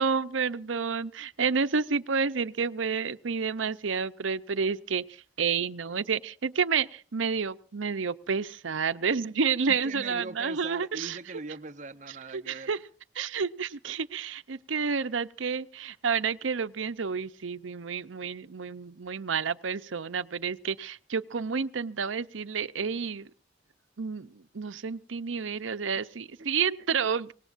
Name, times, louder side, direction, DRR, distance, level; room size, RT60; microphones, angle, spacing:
voice 1, 0.0-5.0 5.4-11.2 12.3-12.8 13.2-23.3 24.0-27.3, right 5 dB, 85° right, 0.7 m, -30 dB
voice 2, 9.7-12.7, right 3 dB, 40° right, 0.8 m, -41 dB
25.0 x 19.5 x 2.6 m
head